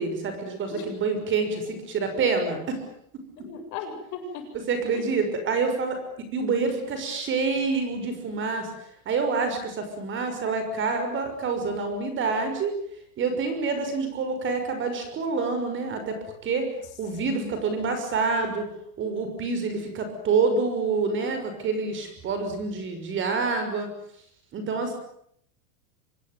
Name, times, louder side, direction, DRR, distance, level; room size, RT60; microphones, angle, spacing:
voice 1, 0.0-2.8 4.7-6.0 6.3-8.7 9.1-12.7 13.2-16.2 16.4-16.7 17.0-18.7 19.0-23.9 24.5-24.9, right 4 dB, 25° right, 8 dB, 6.1 m, -27 dB
voice 2, 3.4-4.4 4.9-5.0 17.2-17.5, left 6 dB, 40° left, 4 dB, 7.9 m, -36 dB
26.0 x 20.5 x 9.5 m, 0.69 s
supercardioid pair, 155°, 45 cm